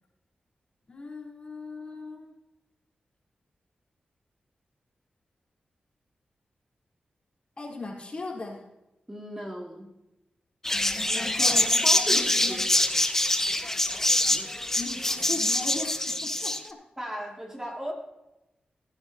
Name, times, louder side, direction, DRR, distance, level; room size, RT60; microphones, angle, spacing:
voice 1, 0.9-2.3 7.6-8.7 10.7-12.6 14.7-16.8, left 3 dB, 40° left, -2 dB, 4.1 m, -38 dB
voice 2, 9.1-10.0 11.1-12.7 17.0-17.9, equal, 15° right, 0 dB, 2.5 m, -36 dB
sound 1, 10.6-16.6, left 1 dB, 15° left, 1.0 m, -25 dB
18.0 x 10.5 x 2.9 m, 0.96 s
cardioid pair, 70°, 3 cm